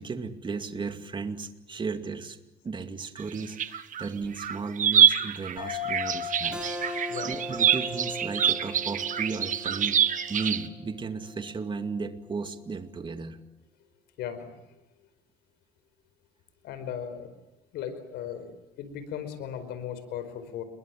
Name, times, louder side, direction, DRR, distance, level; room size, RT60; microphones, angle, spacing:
voice 1, 0.0-2.4 2.6-6.6 7.2-10.0 10.3-13.4, right 4 dB, 30° right, 8 dB, 2.4 m, -35 dB
sound 1, 3.2-4.0 4.4-10.6, right 8 dB, 50° right, 1.6 m, -25 dB
sound 2, 5.6-10.5, left 11 dB, 50° left, 7.5 m, -40 dB
Keyboard (musical), 6.5-11.7, right 1 dB, 5° right, 4.8 m, -40 dB
voice 2, 14.2-14.5 16.6-17.3 17.7-18.5 18.8-20.6, left 9 dB, 80° left, 11 dB, 4.9 m, -36 dB
29.5 x 22.0 x 7.7 m, 0.97 s
cardioid pair, 110°, 17 cm